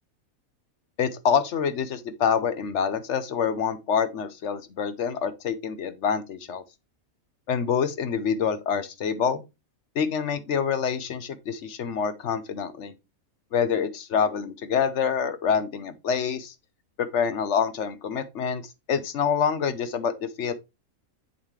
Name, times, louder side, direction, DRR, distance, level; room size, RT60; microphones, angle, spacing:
voice 1, 1.0-6.6 7.5-9.4 10.0-12.9 13.5-16.5 17.0-18.6 18.9-20.5, left 7 dB, 60° left, 1.0 m, -26 dB
7.3 x 5.3 x 3.1 m
omnidirectional pair, 1.5 m